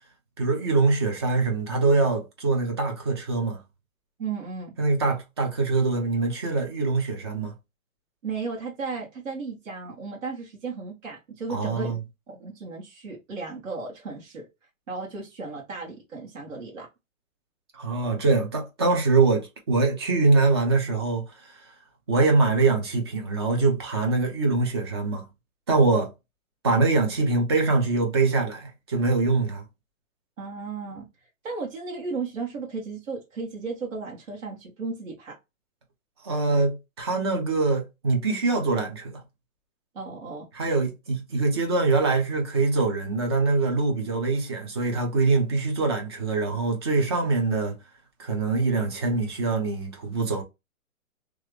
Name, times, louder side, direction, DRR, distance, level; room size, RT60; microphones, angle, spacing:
voice 1, 0.4-3.6 4.8-7.5 11.5-12.0 17.7-21.5 22.1-25.3 25.7-26.1 26.6-29.6 36.2-39.2 40.5-47.8 48.2-50.4, right 3 dB, 20° right, 0.5 m, -23 dB
voice 2, 4.2-4.7 8.2-12.0 12.4-14.5 14.9-16.9 30.4-31.0 31.4-35.4 39.9-40.5, right 4 dB, 65° right, 1.5 m, -34 dB
3.0 x 2.4 x 3.2 m
hypercardioid pair, 155°, 41 cm